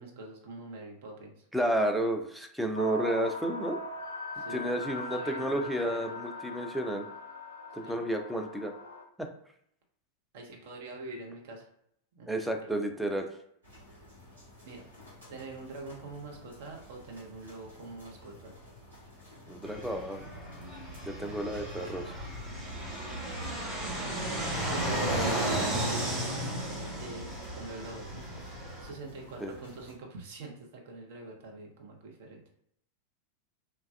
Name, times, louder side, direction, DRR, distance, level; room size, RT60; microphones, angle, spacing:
voice 1, 0.0-1.5 4.3-6.1 7.8-8.0 10.3-11.7 12.1-12.3 12.6-12.8 14.6-14.9 15.3-18.5 21.5-21.7 24.0-24.5 26.6-28.2 28.8-32.4, right 2 dB, 55° right, 1 dB, 0.7 m, -45 dB
voice 2, 1.5-3.8 4.5-7.1 7.7-8.7 9.2-9.3 12.3-13.3 19.5-20.3 21.1-22.0 29.4-29.5, right 1 dB, ahead, 3 dB, 0.4 m, -31 dB
sound 1, 2.7-9.0, left 1 dB, 80° left, 0.6 m, -40 dB
sound 2, 13.6-30.0, equal, 80° right, 1.3 m, -53 dB
Fixed-wing aircraft airplane, 19.6-28.9, right 1 dB, 20° right, 1.2 m, -34 dB
3.3 x 2.2 x 2.2 m, 0.72 s
figure-of-eight pair, 90°, 0 cm